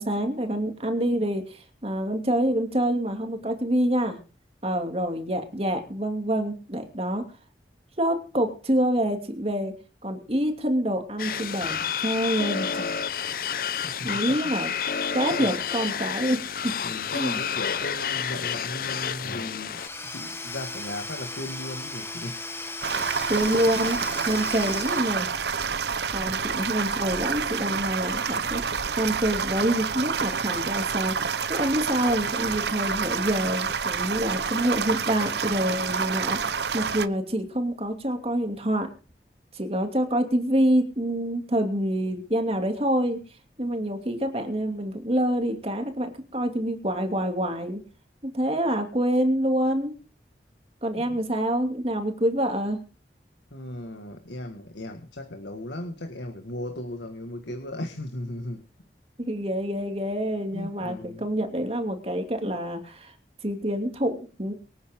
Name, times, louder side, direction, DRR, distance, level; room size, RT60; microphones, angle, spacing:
voice 1, 0.0-4.2 4.6-7.2 8.0-9.7 10.0-12.9 14.0-14.7 15.1-16.7 17.1-17.4 23.3-24.0 24.2-25.3 26.1-38.9 39.5-43.2 43.6-47.8 48.3-49.9 50.8-52.8 59.2-63.1 63.4-64.5, right 1 dB, 35° right, 5 dB, 2.7 m, -26 dB
sound 1, 11.2-19.9, left 7 dB, 55° left, 0.7 m, -30 dB
voice 2, 13.8-14.5 15.3-15.5 16.8-22.5 26.2-26.6 51.0-51.2 53.5-58.6 60.5-61.2, left 1 dB, 90° left, 6 dB, 1.8 m, -37 dB
Domestic sounds home sounds / Tools, 19.7-25.8, left 2 dB, 15° left, 1.4 m, -37 dB
sound 2, 22.8-37.1, right 6 dB, 75° right, 0.9 m, -28 dB
24.5 x 9.6 x 3.7 m, 0.34 s
head